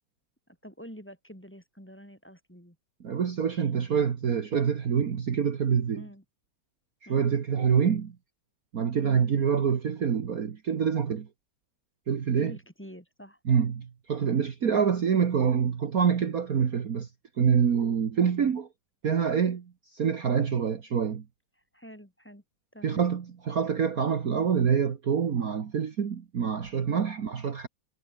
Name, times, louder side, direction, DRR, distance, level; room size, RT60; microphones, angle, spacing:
voice 1, 0.6-2.8 5.9-6.2 7.1-7.3 9.0-9.3 12.3-13.4 21.7-22.4 22.7-23.1 26.9-27.2, equal, 5° left, 3.6 m, -47 dB
voice 2, 3.0-6.0 7.1-8.1 8.7-11.3 12.1-12.5 13.4-17.1 17.4-18.7 19.0-21.2 22.8-27.7, right 7 dB, 50° right, 1.8 m, -26 dB
omnidirectional pair, 2.1 m